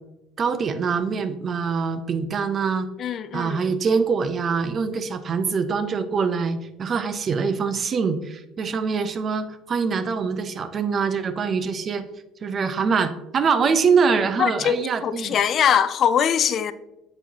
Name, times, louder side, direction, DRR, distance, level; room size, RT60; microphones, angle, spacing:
voice 1, 0.4-2.9 3.3-12.0 12.4-15.4, right 5 dB, 40° right, 0.5 m, -24 dB
voice 2, 3.0-3.6 14.4-16.7, left 8 dB, 50° left, 0.4 m, -22 dB
7.6 x 4.6 x 2.8 m
supercardioid pair, 100°, 0 cm